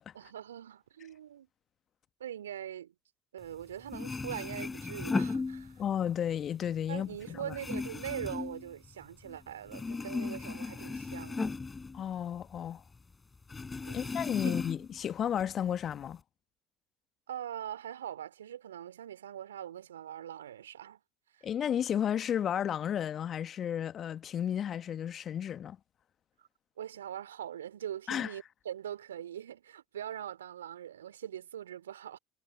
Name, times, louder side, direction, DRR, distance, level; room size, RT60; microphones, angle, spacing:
voice 1, 0.1-1.5 2.2-2.9 3.3-5.8 6.9-11.6 13.8-14.1 14.4-14.6 17.3-21.0 26.8-32.2, right 10 dB, 75° right, 2.9 m, -42 dB
sound 1, 3.6-3.7 3.9-6.1 6.5-9.4 9.7-12.7 12.9-13.0 13.5-15.0 15.4-16.1, left 4 dB, 20° left, 4.4 m, -36 dB
voice 2, 5.8-7.5 11.9-12.8 13.9-16.2 21.4-25.8 28.1-28.3, left 9 dB, 40° left, 1.5 m, -33 dB
figure-of-eight pair, 60°, 0 cm